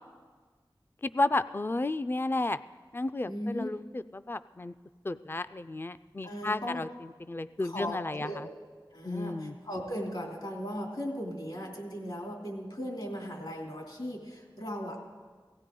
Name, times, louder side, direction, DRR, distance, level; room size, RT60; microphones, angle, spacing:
voice 1, 1.0-2.6 2.9-4.7 5.0-6.9 7.3-8.5 9.0-9.5, left 2 dB, 25° left, 13 dB, 0.4 m, -32 dB
voice 2, 3.2-3.7 6.2-6.8 7.6-8.6 8.9-15.0, equal, 70° left, 0 dB, 2.9 m, -37 dB
17.5 x 16.5 x 3.8 m, 1.5 s
wide cardioid pair, 50°, 9 cm